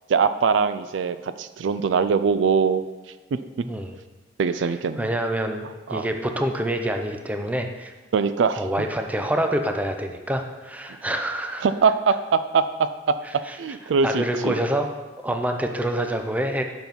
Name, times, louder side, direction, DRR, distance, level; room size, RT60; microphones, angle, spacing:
voice 1, 0.1-2.8 4.4-5.1 5.9-6.1 8.1-8.6 11.6-13.1 13.6-14.5, right 5 dB, 75° right, 12 dB, 0.4 m, -22 dB
voice 2, 5.0-7.9 8.5-11.6 13.5-13.6 14.0-14.9 15.2-16.6, right 1 dB, 10° right, 4 dB, 0.6 m, -26 dB
6.9 x 6.0 x 5.3 m, 1.3 s
head